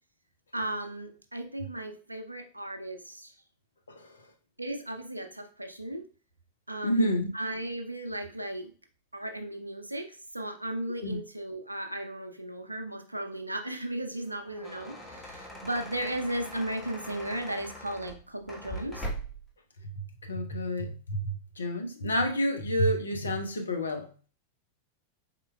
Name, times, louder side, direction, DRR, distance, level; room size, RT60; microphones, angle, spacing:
voice 1, 0.5-3.3 4.6-6.0 6.7-7.0 7.3-8.7 9.1-19.1, right 1 dB, 85° right, 0.5 m, -36 dB
voice 2, 6.8-7.3 11.0-11.2 20.2-24.1, equal, 75° left, 0.6 m, -29 dB
sound 1, 14.3-19.5, equal, 10° left, 1.1 m, -41 dB
4.3 x 3.7 x 2.2 m
figure-of-eight pair, 90°, 0 cm